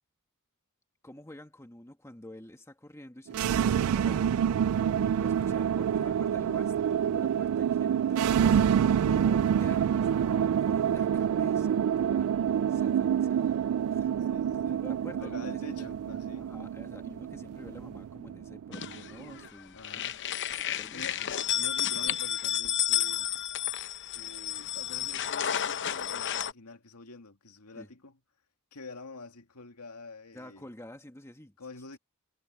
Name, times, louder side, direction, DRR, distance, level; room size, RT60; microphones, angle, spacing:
voice 1, 1.0-4.7 5.0-8.3 9.1-13.6 13.9-15.9 16.3-20.1 20.6-21.3 27.7-27.9 30.3-31.6, left 1 dB, 15° left, 1.6 m, -48 dB
sound 1, 3.3-19.3, right 8 dB, 70° right, 0.3 m, -27 dB
voice 2, 8.2-9.1 14.3-14.8 15.2-16.5 19.7-20.2 20.7-21.2 21.5-23.3 24.2-28.2 28.7-30.6 31.6-32.0, left 3 dB, 80° left, 2.2 m, -47 dB
sound 2, 18.7-19.5 19.8-26.5, left 10 dB, 55° left, 0.8 m, -31 dB
head